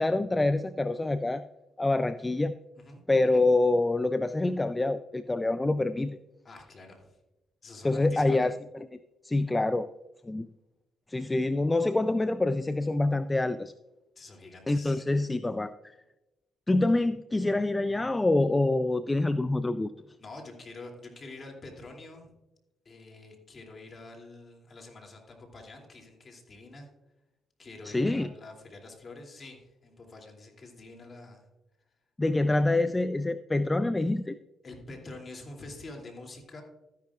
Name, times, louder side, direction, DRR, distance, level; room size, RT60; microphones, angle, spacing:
voice 1, 0.0-1.5 1.8-2.5 3.1-6.2 7.8-9.0 9.2-9.9 10.2-10.5 11.1-13.7 14.7-16.0 16.7-19.9 27.8-28.3 32.2-34.4, left 2 dB, 15° left, 13 dB, 0.4 m, -26 dB
voice 2, 6.4-7.2 7.6-8.5 14.2-15.0 20.2-22.3 22.8-26.9 27.6-31.5 34.6-36.6, left 2 dB, 40° left, 1 dB, 2.7 m, -46 dB
13.0 x 10.5 x 2.4 m, 0.99 s
cardioid pair, 90°, 0 cm